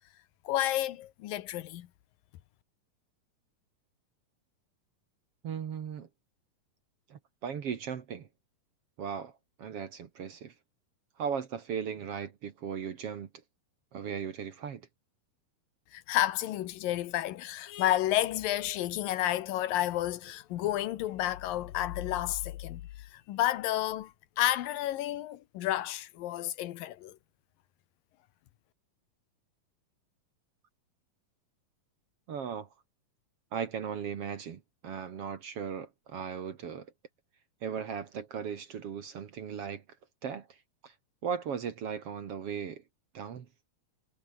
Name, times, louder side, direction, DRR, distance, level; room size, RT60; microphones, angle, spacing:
voice 1, 0.4-1.9 15.9-27.2, left 14 dB, 80° left, 2.9 m, -31 dB
voice 2, 5.4-6.1 7.1-8.3 9.0-9.3 9.6-10.5 11.2-13.3 13.9-14.8 32.3-32.7 33.5-36.9 37.6-39.8 40.2-40.6 40.8-40.9 41.2-42.8 43.1-43.5, right 7 dB, 50° right, 2.1 m, -37 dB
omnidirectional pair, 4.0 m